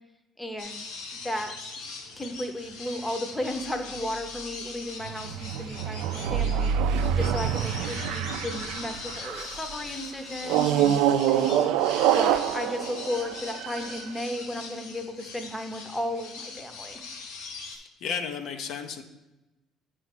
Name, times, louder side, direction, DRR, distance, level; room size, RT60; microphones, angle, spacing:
voice 1, 0.4-0.8 1.2-1.5 2.2-17.0, left 1 dB, 10° left, 5 dB, 0.7 m, -34 dB
sound 1, 0.6-17.8, left 4 dB, 85° left, 1.0 m, -41 dB
sound 2, 3.4-4.7 6.2-8.7 9.2-9.3 12.3-12.5, right 4 dB, 45° right, 0.7 m, -31 dB
sound 3, 5.0-9.6 10.4-14.0, right 10 dB, 85° right, 0.3 m, -26 dB
voice 2, 17.6-19.0, left 6 dB, 65° left, 6 dB, 0.5 m, -34 dB
8.1 x 3.1 x 6.0 m, 1.0 s
cardioid pair, 110°, 0 cm